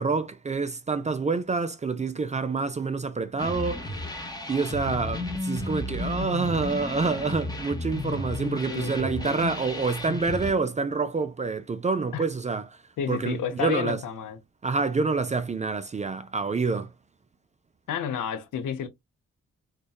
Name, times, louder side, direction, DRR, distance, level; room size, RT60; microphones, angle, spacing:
voice 1, 0.0-3.9 4.5-12.8 13.1-14.0 14.6-16.9, right 4 dB, 25° right, 0.3 m, -27 dB
sound 1, 3.4-10.5, left 2 dB, 10° left, 0.7 m, -33 dB
voice 2, 8.1-9.4 12.1-12.3 13.0-14.4 17.9-18.9, left 8 dB, 70° left, 0.6 m, -32 dB
2.7 x 2.1 x 2.2 m
supercardioid pair, 50°, 33 cm